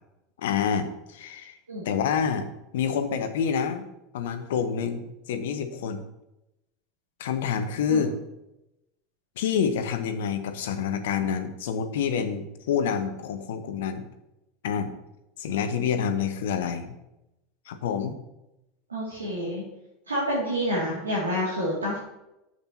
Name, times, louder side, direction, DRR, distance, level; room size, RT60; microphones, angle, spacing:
voice 1, 0.4-1.6 1.8-2.5 2.7-3.8 4.1-6.0 7.2-8.1 9.4-14.1 14.6-14.9 15.4-16.9 17.7-18.2, left 7 dB, 60° left, 9 dB, 0.9 m, -27 dB
voice 2, 18.9-19.6 20.1-22.0, equal, 80° right, -6 dB, 2.2 m, -28 dB
10.0 x 7.7 x 2.8 m, 0.91 s
figure-of-eight pair, 80°, 0 cm